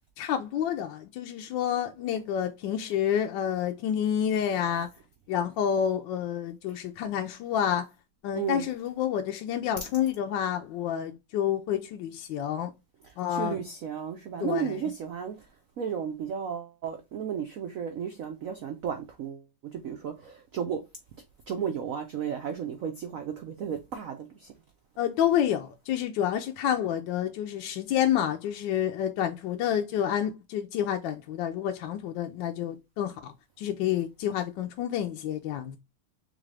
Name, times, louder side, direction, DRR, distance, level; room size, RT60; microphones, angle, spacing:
voice 1, 0.2-4.9 5.3-7.9 8.2-12.7 13.2-13.6 14.4-14.7 25.0-35.8, left 9 dB, 75° left, 1.2 m, -29 dB
voice 2, 8.3-8.7 13.0-15.4 15.8-19.5 19.7-20.8 21.5-24.5, right 7 dB, 85° right, 0.7 m, -34 dB
3.9 x 3.6 x 3.3 m
omnidirectional pair, 2.3 m